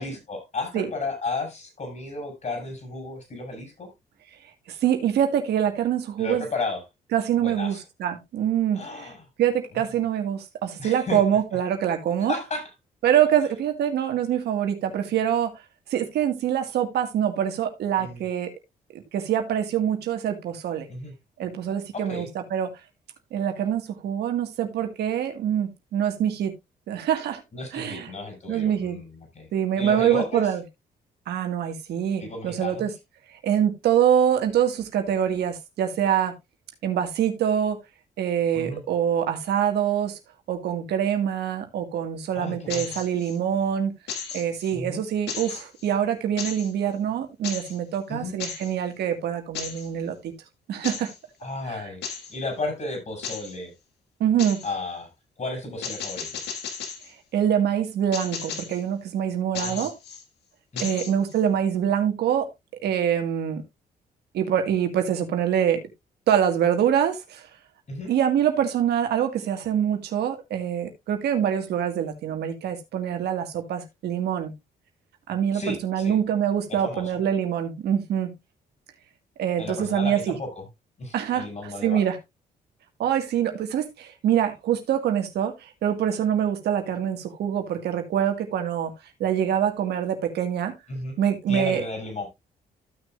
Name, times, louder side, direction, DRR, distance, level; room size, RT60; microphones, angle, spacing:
voice 1, 0.0-3.9 6.2-6.8 7.4-7.8 8.7-9.2 9.8-9.9 10.8-11.2 12.3-12.7 18.0-18.2 20.9-21.1 21.9-22.3 27.5-29.5 29.8-30.5 32.2-32.9 38.5-38.8 42.3-42.9 44.7-45.0 48.1-48.3 51.4-53.7 54.6-55.1 55.4-56.4 59.5-59.9 60.7-61.0 67.9-68.1 75.5-76.1 76.7-77.1 79.6-80.5 81.0-82.0 90.9-91.2 91.5-92.3, left 2 dB, 45° left, 5.9 m, -33 dB
voice 2, 4.7-6.5 7.1-9.1 9.4-12.3 13.0-15.5 15.9-18.5 18.9-20.9 21.4-22.7 23.3-26.5 26.9-27.4 27.7-28.1 28.5-29.0 29.5-30.6 31.3-32.9 33.3-36.3 36.8-37.8 38.2-40.2 40.5-43.9 44.3-50.3 50.7-51.1 51.7-51.9 54.2-54.6 57.3-59.9 60.8-62.5 62.8-63.6 64.3-65.8 66.3-67.5 68.1-74.5 75.3-78.3 79.4-80.4 81.1-82.2 83.0-88.9 89.2-90.7 91.2-91.8, right 9 dB, 80° right, 1.8 m, -25 dB
sound 1, 42.7-43.4 44.1-44.7 45.3-45.9 46.4-46.7 47.4-47.8 48.4-48.7 49.6-49.9 50.8-51.2 52.0-52.3 53.2-53.6 54.4-54.7 55.8-57.1 58.1-58.8 59.6-60.2 60.8-61.4, left 6 dB, 85° left, 1.8 m, -35 dB
14.5 x 6.2 x 2.4 m
cardioid pair, 70°, 17 cm